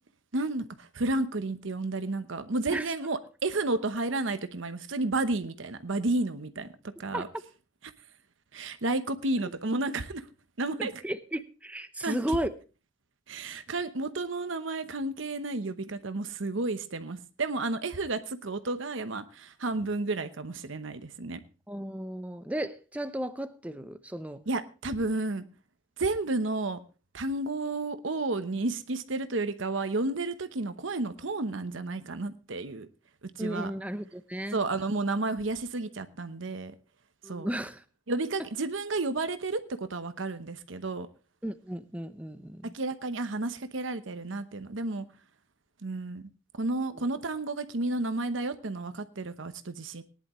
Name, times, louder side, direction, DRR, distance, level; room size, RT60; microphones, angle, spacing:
voice 1, 0.3-6.7 7.0-7.3 8.5-10.3 10.6-11.0 12.0-12.4 13.3-21.4 24.5-25.4 26.0-26.8 27.1-32.9 33.4-33.7 34.5-36.7 37.2-37.5 38.1-41.1 42.7-45.1 45.8-46.3 46.6-50.0, right 2 dB, 70° right, 0.9 m, -31 dB
voice 2, 10.8-12.5 21.7-24.4 33.4-34.6 37.2-37.8 41.4-42.7, right 1 dB, 5° right, 0.7 m, -34 dB
18.5 x 10.5 x 3.1 m
head